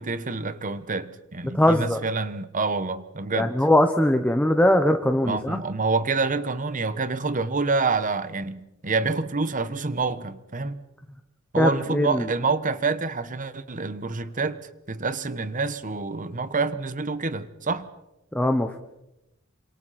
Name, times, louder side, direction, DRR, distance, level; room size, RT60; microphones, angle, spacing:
voice 1, 0.0-3.5 5.2-10.8 11.5-17.9, right 4 dB, 40° right, 1.2 m, -27 dB
voice 2, 1.5-2.0 3.3-5.6 11.6-12.3 18.3-18.8, left 1 dB, 5° left, 1.1 m, -21 dB
28.5 x 26.5 x 4.3 m
head